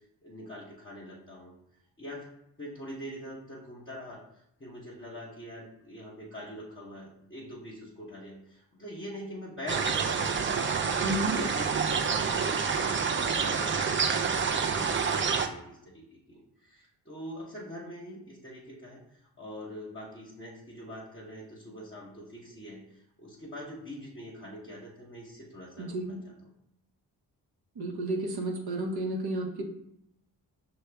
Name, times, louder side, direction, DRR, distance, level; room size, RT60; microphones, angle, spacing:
voice 1, 0.2-1.5 2.0-2.3 2.6-4.2 4.6-10.9 11.3-13.0 13.4-13.7 14.5-19.0 19.4-26.3, equal, 30° left, -5 dB, 0.9 m, -43 dB
sound 1, 9.7-15.5, right 6 dB, 30° right, 0.4 m, -28 dB
voice 2, 11.0-11.4 25.8-26.2 27.8-29.6, right 1 dB, 60° right, 1 dB, 0.8 m, -32 dB
5.6 x 2.2 x 3.3 m, 0.77 s
cardioid pair, 45°, 44 cm